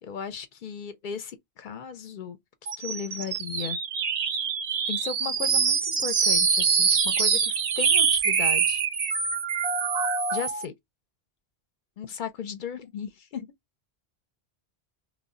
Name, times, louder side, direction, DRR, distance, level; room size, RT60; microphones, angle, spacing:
voice 1, 0.0-3.8 4.9-8.8 10.3-10.7 12.0-13.5, left 7 dB, 60° left, 0.6 m, -36 dB
sound 1, 2.7-10.6, right 6 dB, 50° right, 0.5 m, -24 dB
2.1 x 2.1 x 3.6 m
omnidirectional pair, 1.1 m